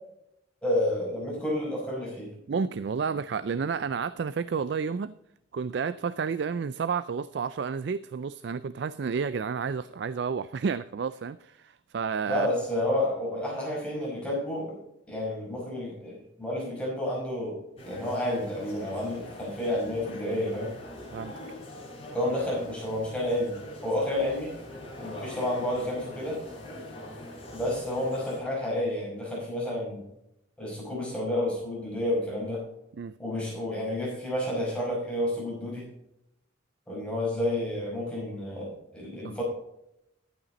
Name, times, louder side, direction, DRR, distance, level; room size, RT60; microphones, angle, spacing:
voice 1, 0.6-2.3 12.3-14.8 15.1-20.7 22.1-23.6 23.8-24.5 25.0-26.4 27.5-30.0 30.6-32.6 33.2-35.8 36.9-39.4, left 1 dB, 5° left, 5.1 m, -30 dB
voice 2, 2.5-5.2 5.5-12.5 21.1-21.4 33.0-33.1 39.2-39.4, right 5 dB, 60° right, 0.3 m, -31 dB
sound 1, 17.8-28.4, left 1 dB, 30° left, 4.5 m, -43 dB
12.0 x 8.9 x 4.0 m
head